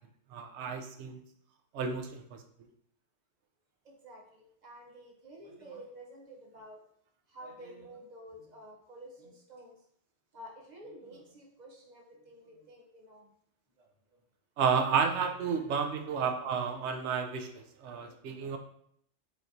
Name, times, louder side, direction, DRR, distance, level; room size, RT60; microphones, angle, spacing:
voice 1, 0.3-1.2 1.7-2.4 14.6-18.6, right 6 dB, 70° right, 4 dB, 0.8 m, -31 dB
voice 2, 3.8-6.8 7.3-9.7 10.3-13.3 13.8-13.9 15.7-16.3 17.8-18.4, right 1 dB, 40° right, 0 dB, 0.8 m, -51 dB
5.0 x 3.0 x 2.6 m, 0.70 s
omnidirectional pair, 1.2 m